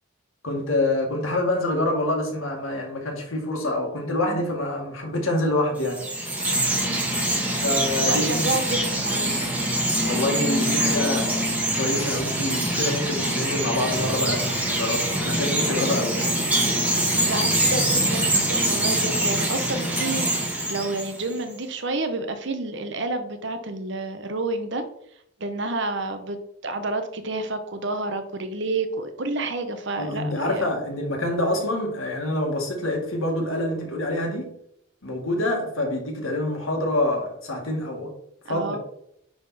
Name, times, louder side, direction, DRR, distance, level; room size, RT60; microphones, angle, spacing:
voice 1, 0.4-6.0 7.6-8.5 10.0-11.3 11.7-16.2 30.0-34.5 35.0-38.1 38.5-38.8, left 1 dB, 75° left, 1 dB, 2.0 m, -26 dB
Chirp tweet, 5.8-21.4, right 1 dB, 10° right, 1.4 m, -24 dB
voice 2, 6.8-7.1 8.1-9.4 17.3-24.8 25.4-30.7 38.5-38.8, right 2 dB, 55° right, 8 dB, 0.9 m, -29 dB
10.0 x 3.8 x 4.2 m, 0.73 s
head